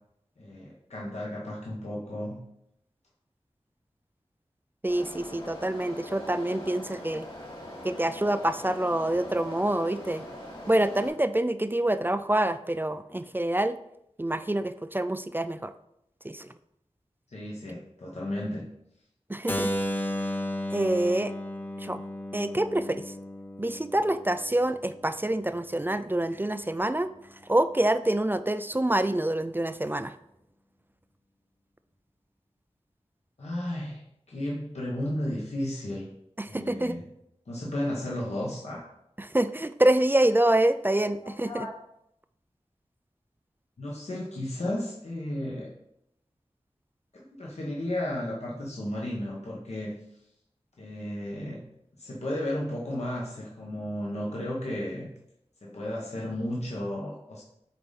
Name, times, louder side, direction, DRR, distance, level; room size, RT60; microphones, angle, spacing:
voice 1, 0.4-2.4 17.3-18.6 33.4-36.1 36.5-37.0 37.5-38.9 41.2-41.7 43.8-45.7 47.1-49.9 50.8-51.6 52.0-55.1 55.6-57.4, left 1 dB, 70° left, -5 dB, 1.2 m, -33 dB
voice 2, 4.8-7.3 7.8-10.2 10.7-13.8 14.2-15.7 16.2-16.5 19.3-19.7 20.7-21.3 21.8-22.0 22.3-23.1 23.6-27.1 27.4-30.2 36.4-37.0 39.2-41.7, right 1 dB, 20° right, 11 dB, 0.3 m, -26 dB
sound 1, 4.9-11.1, equal, 50° left, 2.2 m, -42 dB
Keyboard (musical), 19.5-25.3, left 1 dB, 15° left, 0.7 m, -34 dB
6.7 x 4.0 x 4.0 m, 0.79 s
wide cardioid pair, 45°, 11 cm